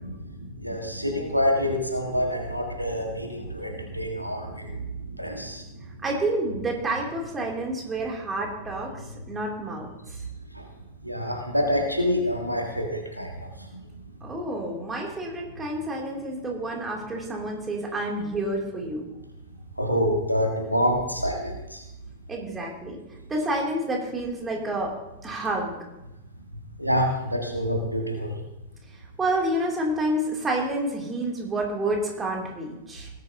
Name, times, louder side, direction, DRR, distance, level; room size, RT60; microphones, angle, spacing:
voice 1, 0.0-5.6 10.5-10.6 11.0-13.3 13.6-13.8 19.8-21.8 26.8-28.4, equal, 90° right, 2 dB, 1.7 m, -27 dB
voice 2, 6.0-8.9 9.3-9.9 14.2-19.0 22.3-23.0 23.3-24.9 25.2-25.7 29.2-33.1, right 1 dB, 15° right, -1 dB, 3.0 m, -29 dB
18.5 x 10.5 x 2.9 m, 0.96 s
figure-of-eight pair, 90°, 0 cm